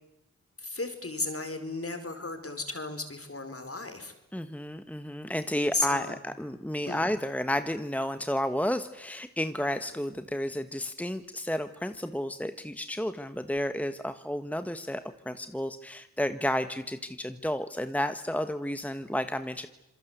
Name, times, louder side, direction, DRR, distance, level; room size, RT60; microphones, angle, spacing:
voice 1, 0.6-4.1 5.7-6.2 6.9-7.0, left 2 dB, 45° left, 7 dB, 5.0 m, -34 dB
voice 2, 4.3-19.7, left 1 dB, 5° left, 10 dB, 1.5 m, -32 dB
26.5 x 21.5 x 8.3 m, 0.89 s
cardioid pair, 40°, 33 cm